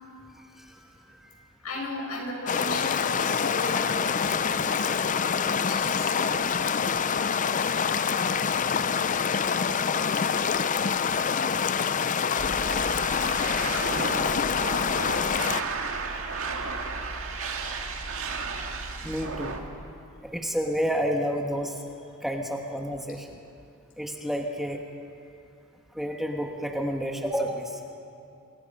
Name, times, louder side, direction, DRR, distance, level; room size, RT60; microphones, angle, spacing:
voice 1, 0.4-1.4 8.7-8.9 12.2-12.4 14.3-14.4 15.6-15.7 19.0-19.6 20.3-21.8 22.2-23.4 24.0-24.8 25.9-27.8, equal, ahead, 1 dB, 1.6 m, -30 dB
voice 2, 1.6-6.3 8.4-8.5 9.0-9.1 12.0-12.5, left 2 dB, 80° left, -1 dB, 7.3 m, -37 dB
sound 1, 2.5-15.6, left 6 dB, 35° left, 0.5 m, -26 dB
sound 2, 12.4-19.6, right 4 dB, 65° right, 2.1 m, -33 dB
27.5 x 27.5 x 5.6 m, 2.6 s
head